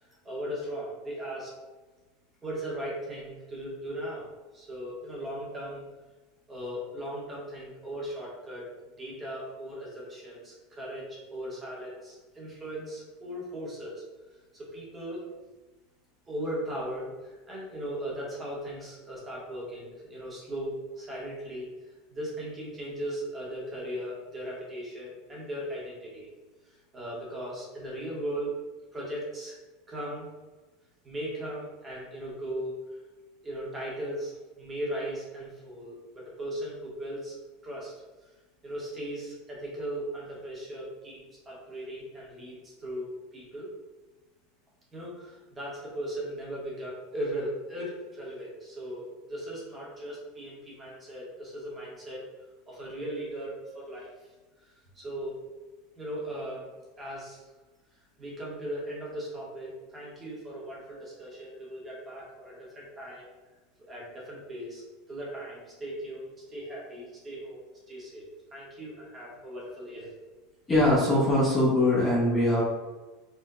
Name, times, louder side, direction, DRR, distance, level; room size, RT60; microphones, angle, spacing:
voice 1, 0.0-1.5 2.4-5.9 6.5-8.7 9.0-14.0 14.5-15.2 16.3-21.7 22.1-26.3 26.6-28.5 28.9-29.6 29.9-30.3 31.0-32.8 33.4-34.3 34.6-37.4 37.6-37.9 38.6-43.7 44.9-52.2 52.7-54.1 54.6-55.4 55.9-56.7 57.0-57.4 58.2-63.3 63.9-64.8 65.1-70.2, right 1 dB, 15° right, -5 dB, 0.9 m, -38 dB
voice 2, 70.7-72.6, left 1 dB, 15° left, -7 dB, 0.6 m, -22 dB
4.5 x 2.1 x 2.4 m, 1.2 s
supercardioid pair, 175°, 0 cm